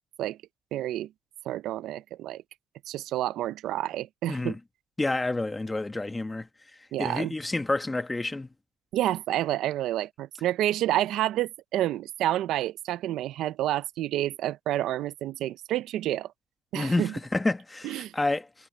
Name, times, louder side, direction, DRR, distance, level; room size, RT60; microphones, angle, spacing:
voice 1, 0.7-1.1 1.5-2.4 2.9-4.6 6.9-7.3 8.9-16.3 16.7-17.1 17.8-18.1, right 13 dB, 85° right, 0.5 m, -29 dB
voice 2, 4.3-4.6 5.0-6.5 7.0-8.5 16.7-18.5, left 2 dB, 15° left, 1.3 m, -29 dB
cardioid pair, 90°, 0 cm